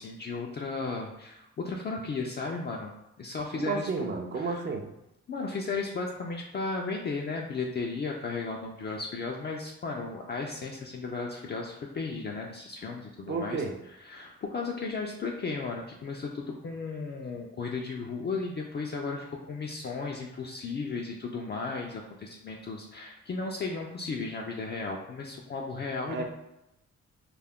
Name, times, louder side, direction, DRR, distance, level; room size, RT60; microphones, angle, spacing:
voice 1, 0.0-2.9 3.2-3.9 4.4-4.6 5.3-13.6 14.0-26.2, left 4 dB, 35° left, -1 dB, 0.4 m, -35 dB
voice 2, 3.5-4.9 13.3-13.7 26.1-26.2, right 4 dB, 35° right, 3 dB, 0.5 m, -31 dB
2.3 x 2.1 x 3.5 m, 0.89 s
cardioid pair, 70°, 30 cm